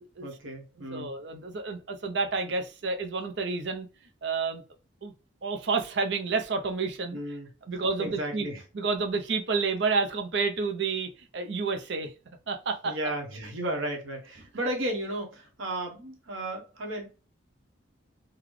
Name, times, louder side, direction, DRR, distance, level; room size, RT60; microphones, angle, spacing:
voice 1, 0.2-1.1 7.1-7.5 8.0-8.6 12.8-17.1, right 1 dB, 85° right, 1.1 m, -34 dB
voice 2, 0.9-3.9 4.2-4.6 5.0-5.1 5.4-7.2 7.7-8.5 8.7-12.1 12.5-12.9, right 4 dB, 60° right, 0.6 m, -29 dB
3.9 x 2.2 x 3.1 m
head